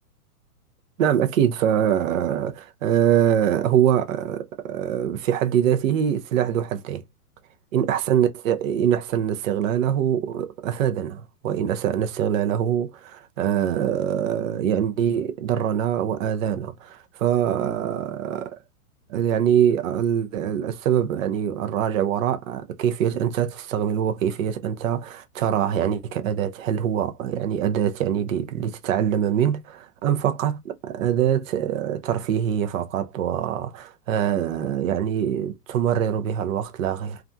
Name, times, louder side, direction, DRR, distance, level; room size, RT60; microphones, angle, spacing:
voice 1, 1.0-7.0 7.7-18.6 19.1-37.2, right 9 dB, 60° right, 0.5 m, -24 dB
2.4 x 2.2 x 2.5 m
hypercardioid pair, 160°, 46 cm